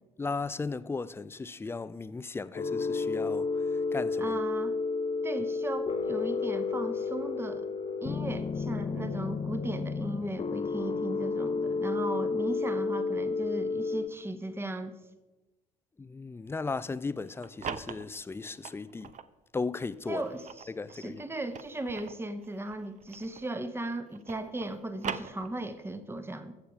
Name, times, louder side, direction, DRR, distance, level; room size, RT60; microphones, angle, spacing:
voice 1, 0.2-4.4 16.0-19.1 19.5-20.2 20.7-21.2, left 4 dB, 10° left, 0.4 m, -36 dB
sound 1, 2.5-14.1, left 4 dB, 30° left, 0.8 m, -31 dB
voice 2, 4.2-4.7 5.2-7.7 8.0-15.0 20.1-26.5, right 1 dB, 10° right, 1.0 m, -37 dB
sound 2, 17.2-19.3 19.9-23.6 23.9-25.9, right 7 dB, 35° right, 0.7 m, -42 dB
15.5 x 6.9 x 4.8 m
figure-of-eight pair, 50°, 21 cm